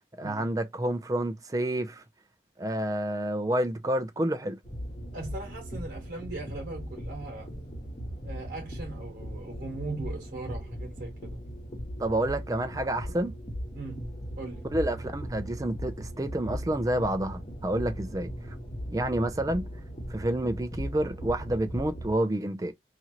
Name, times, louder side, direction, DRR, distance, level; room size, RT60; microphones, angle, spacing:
voice 1, 0.2-2.0 2.6-4.6 12.0-13.3 14.7-18.3 18.9-19.7 20.1-22.7, right 1 dB, 20° right, 0.4 m, -29 dB
sound 1, 4.6-22.1, equal, 30° left, 1.0 m, -38 dB
voice 2, 5.1-7.5 8.2-11.4 13.7-14.1 14.4-14.6, right 2 dB, 50° right, 1.2 m, -39 dB
2.9 x 2.5 x 2.9 m
head